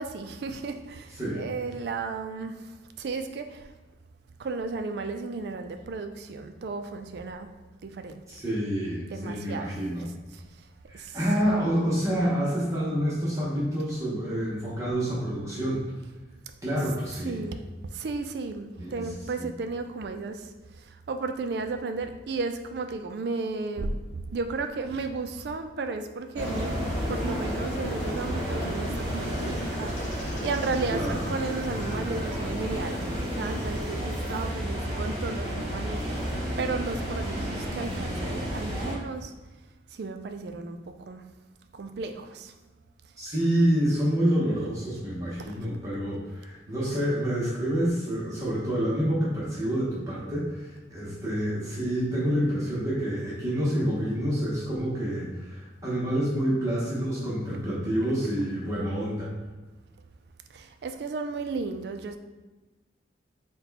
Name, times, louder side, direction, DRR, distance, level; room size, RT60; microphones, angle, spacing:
voice 1, 0.0-3.7 4.4-7.5 7.8-8.2 9.1-9.8 10.3-10.4 10.9-11.2 17.2-17.6 17.8-20.5 20.8-26.8 27.1-36.3 36.6-39.3 39.9-41.2 41.7-42.5 45.5-45.6 60.5-62.2, right 3 dB, 60° right, 7 dB, 0.3 m, -34 dB
voice 2, 1.2-1.7 8.3-10.1 10.9-15.8 16.6-17.4 18.8-19.1 19.4-19.5 30.9-31.2 43.2-59.3, equal, 15° right, -8 dB, 0.8 m, -28 dB
sound 1, 26.4-34.1, left 1 dB, 40° left, 0.5 m, -37 dB
sound 2, 26.4-38.9, equal, 35° right, 1.3 m, -32 dB
4.1 x 2.2 x 4.0 m, 1.2 s
head